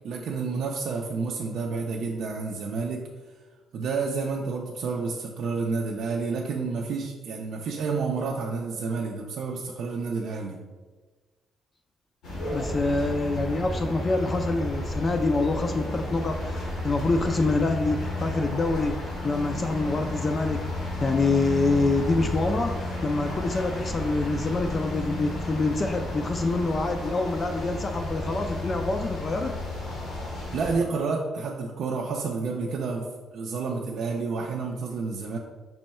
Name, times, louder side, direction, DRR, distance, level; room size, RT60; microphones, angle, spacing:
voice 1, 0.0-3.1 3.7-10.6 30.5-35.4, right 4 dB, 70° right, 0 dB, 0.4 m, -30 dB
sound 1, 12.2-30.7, left 1 dB, 90° left, 1.3 m, -32 dB
voice 2, 12.5-29.5, left 3 dB, 35° left, 4 dB, 0.3 m, -26 dB
5.4 x 2.2 x 4.1 m, 1.3 s
cardioid pair, 90°, 0 cm